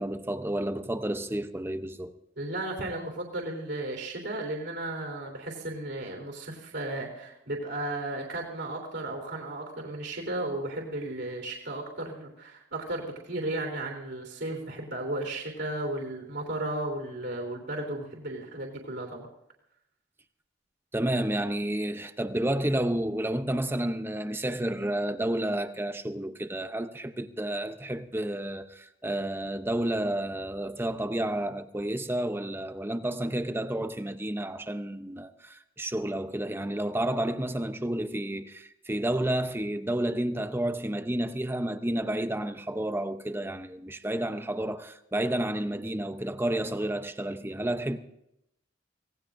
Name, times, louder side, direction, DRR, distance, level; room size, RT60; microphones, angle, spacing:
voice 1, 0.0-2.1 20.9-48.0, right 1 dB, 10° right, 0.7 m, -30 dB
voice 2, 2.4-19.3, right 1 dB, 60° right, 3.3 m, -34 dB
25.5 x 18.0 x 2.6 m
head